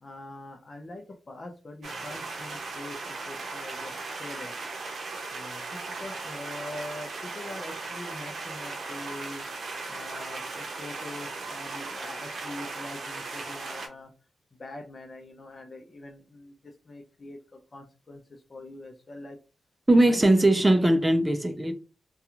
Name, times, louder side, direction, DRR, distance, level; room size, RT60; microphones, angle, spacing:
voice 1, 0.0-4.6 5.3-9.5 9.9-14.1 14.5-19.4 19.9-20.4, left 2 dB, 45° left, 0.5 m, -43 dB
sound 1, 1.8-13.9, right 3 dB, 70° right, 0.6 m, -37 dB
voice 2, 19.9-21.7, right 1 dB, 20° right, 0.4 m, -20 dB
2.7 x 2.3 x 2.4 m
supercardioid pair, 50°, 0 cm